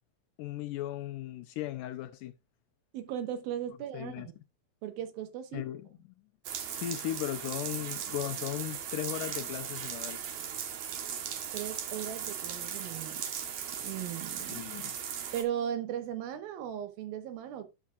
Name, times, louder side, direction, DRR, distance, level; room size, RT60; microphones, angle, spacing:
voice 1, 0.4-2.3 3.9-4.3 5.5-5.9 6.7-10.2 14.5-14.9, left 14 dB, 80° left, 2.0 m, -37 dB
voice 2, 2.9-4.2 4.8-5.6 11.5-13.2 13.8-14.6 15.3-17.7, right 10 dB, 85° right, 3.0 m, -37 dB
sound 1, 6.4-15.4, right 8 dB, 60° right, 2.2 m, -38 dB
11.5 x 7.2 x 2.4 m
omnidirectional pair, 4.2 m